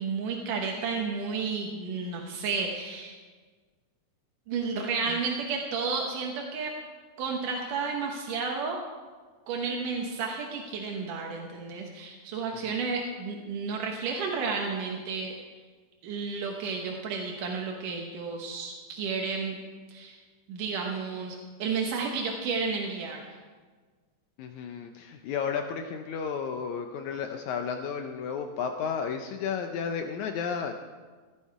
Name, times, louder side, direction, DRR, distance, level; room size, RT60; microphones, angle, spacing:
voice 1, 0.0-3.2 4.5-6.8 7.2-8.8 9.5-15.4 16.0-19.6 19.9-20.2 20.5-23.4, right 5 dB, 85° right, 0 dB, 2.8 m, -32 dB
voice 2, 24.4-30.7, left 6 dB, 75° left, 5 dB, 1.9 m, -33 dB
15.5 x 12.0 x 4.7 m, 1.4 s
omnidirectional pair, 3.6 m